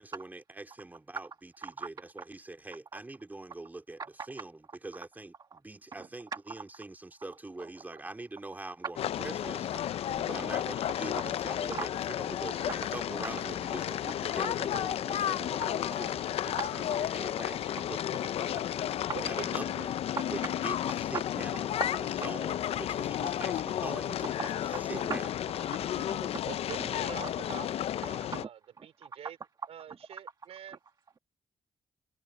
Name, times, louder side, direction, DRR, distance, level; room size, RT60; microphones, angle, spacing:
voice 1, 0.1-9.7 10.2-11.9 12.2-18.6 19.2-19.9 20.3-24.4 24.9-25.2, right 2 dB, 15° right, 3.2 m, -43 dB
sound 1, 9.0-28.4, left 11 dB, 75° left, 0.5 m, -32 dB
voice 2, 15.6-16.0 16.6-16.7 20.2-20.3 24.4-24.8 25.1-25.2 25.6-26.4 27.2-27.3 28.3-28.5 28.8-28.9, right 5 dB, 40° right, 1.5 m, -39 dB
voice 3, 19.1-19.7 26.5-27.7 28.0-29.4 29.7-30.8, right 9 dB, 85° right, 3.9 m, -45 dB
cardioid pair, 120°, 10 cm